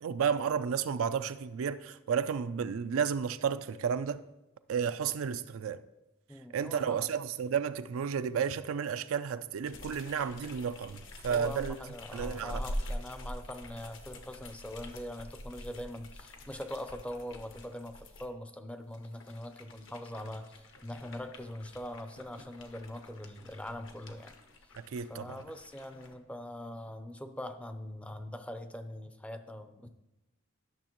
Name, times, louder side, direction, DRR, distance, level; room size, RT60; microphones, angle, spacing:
voice 1, 0.0-4.2 4.7-5.8 6.5-11.8 12.1-12.6 24.8-25.4, right 7 dB, 75° right, 0.4 m, -32 dB
voice 2, 6.3-7.1 11.3-24.4 25.1-29.9, left 1 dB, 5° left, 0.5 m, -42 dB
sound 1, 9.6-18.3 18.8-26.1, left 1 dB, 65° left, 1.0 m, -45 dB
12.0 x 6.4 x 3.0 m
head